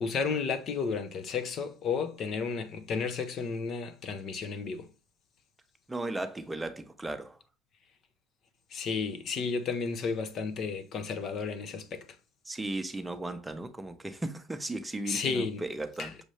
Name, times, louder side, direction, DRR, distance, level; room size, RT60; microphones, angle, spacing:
voice 1, 0.0-4.9 8.7-12.1 15.0-15.7 16.0-16.2, left 5 dB, 45° left, 0.7 m, -32 dB
voice 2, 5.9-7.4 12.5-16.1, right 2 dB, 10° right, 0.7 m, -36 dB
6.4 x 2.6 x 3.2 m
supercardioid pair, 110°, 0 cm